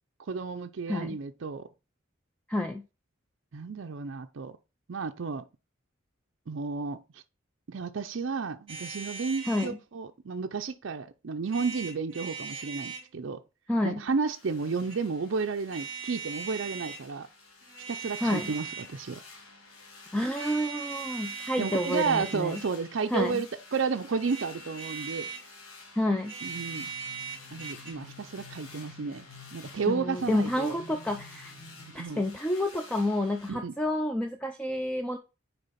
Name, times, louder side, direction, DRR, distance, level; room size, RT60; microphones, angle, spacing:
voice 1, 0.3-1.7 3.5-4.5 4.9-5.4 6.5-7.0 7.7-13.4 13.8-17.3 17.9-19.2 21.6-25.3 26.4-26.9 27.5-29.3 29.5-30.7 31.9-32.2 33.5-33.7, right 5 dB, 60° right, 0.5 m, -32 dB
voice 2, 2.5-2.8 9.4-9.8 13.7-14.0 18.2-18.5 20.1-22.6 23.1-23.4 26.0-26.3 29.9-31.5 31.9-35.2, left 1 dB, 5° left, 0.5 m, -29 dB
sound 1, 8.7-9.7 11.4-13.1 14.6-15.0 15.7-17.0 17.6-19.0 20.3-22.8 24.1-25.5 26.2-27.9, right 5 dB, 25° right, 1.8 m, -40 dB
sound 2, 14.3-33.5, left 3 dB, 85° left, 1.5 m, -51 dB
sound 3, 26.5-32.1, left 4 dB, 25° left, 1.8 m, -51 dB
6.7 x 4.6 x 4.1 m
head